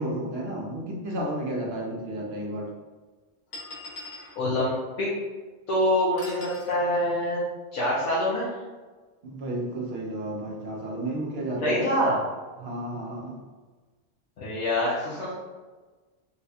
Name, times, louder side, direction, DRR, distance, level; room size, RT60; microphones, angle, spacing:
voice 1, 0.0-2.7 9.2-11.9 12.6-13.4, right 1 dB, 60° right, -1 dB, 0.8 m, -32 dB
sound 1, 1.5-1.6 2.5-2.6 3.5-4.4 6.2-6.7, left 2 dB, 40° left, 0.8 m, -41 dB
voice 2, 4.4-5.1 5.7-7.5 7.7-8.5 11.6-12.2 14.4-15.3, left 1 dB, 65° left, -9 dB, 1.1 m, -25 dB
4.0 x 2.2 x 2.7 m, 1.3 s
omnidirectional pair, 1.4 m